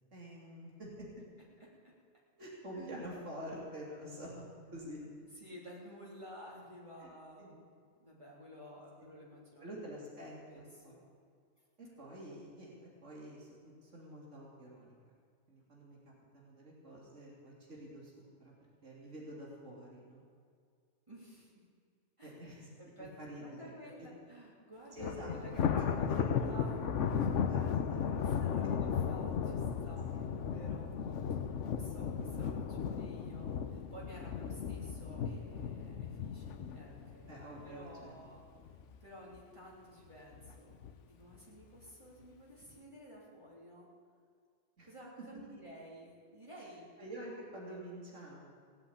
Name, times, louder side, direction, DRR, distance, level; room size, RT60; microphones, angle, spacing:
voice 1, 0.1-1.1 2.4-4.3 4.7-5.0 7.0-7.1 7.4-7.6 9.0-9.1 9.6-10.9 11.8-15.1 15.5-18.5 18.8-20.2 22.2-22.7 23.2-23.7 24.9-25.3 25.7-26.5 27.2-28.3 30.1-30.2 37.3-38.1 44.8-44.9 47.0-48.5, equal, 75° right, -3 dB, 3.3 m, -48 dB
voice 2, 1.6-1.9 2.7-3.1 5.3-7.7 8.0-9.7 10.5-11.0 21.1-21.6 22.2-25.6 26.0-26.8 27.0-27.5 28.1-30.1 30.4-38.4 39.0-40.7 41.1-43.9 44.8-46.9 47.7-47.8, equal, 25° right, -5 dB, 3.4 m, -53 dB
Thunder, 25.0-38.3 38.7-39.0 39.4-39.5 40.3-40.9, left 7 dB, 75° left, 1.1 m, -35 dB
18.5 x 8.1 x 8.7 m, 2.2 s
omnidirectional pair, 1.3 m